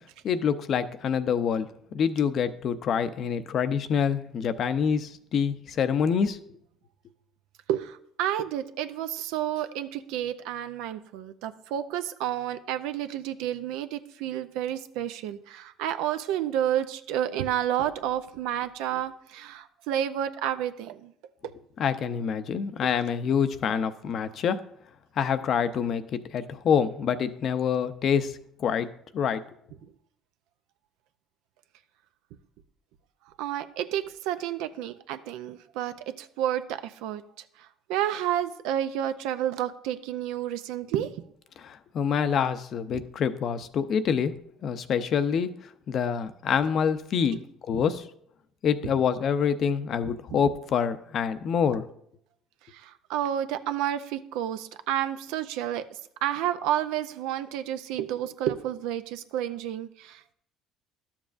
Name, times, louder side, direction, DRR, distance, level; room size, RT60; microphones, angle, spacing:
voice 1, 0.2-6.4 21.8-24.6 25.2-28.9 29.1-29.5 41.6-44.4 44.6-47.4 47.7-48.1 48.6-51.9, left 7 dB, 55° left, 12 dB, 0.5 m, -26 dB
voice 2, 7.7-21.1 21.4-21.5 29.8-29.9 33.4-37.2 37.6-41.2 42.9-43.0 47.3-47.4 50.3-50.4 52.7-55.9 56.2-60.3, right 11 dB, 80° right, 11 dB, 0.5 m, -30 dB
12.0 x 7.1 x 2.5 m, 0.69 s
supercardioid pair, 95°, 0 cm